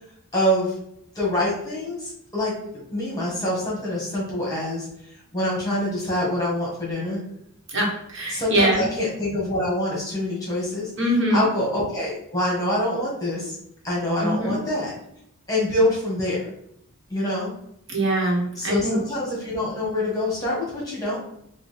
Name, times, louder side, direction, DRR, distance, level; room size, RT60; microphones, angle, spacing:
voice 1, 0.3-0.7 1.1-2.5 2.9-4.9 5.3-7.2 8.3-10.9 11.3-13.6 13.8-14.9 15.5-16.4 17.1-17.5 18.6-21.2, left 1 dB, 15° left, -5 dB, 1.4 m, -25 dB
voice 2, 7.7-8.8 11.0-11.5 14.2-14.6 17.9-19.0, right 1 dB, 60° right, -2 dB, 1.1 m, -23 dB
4.7 x 2.3 x 3.4 m, 0.74 s
head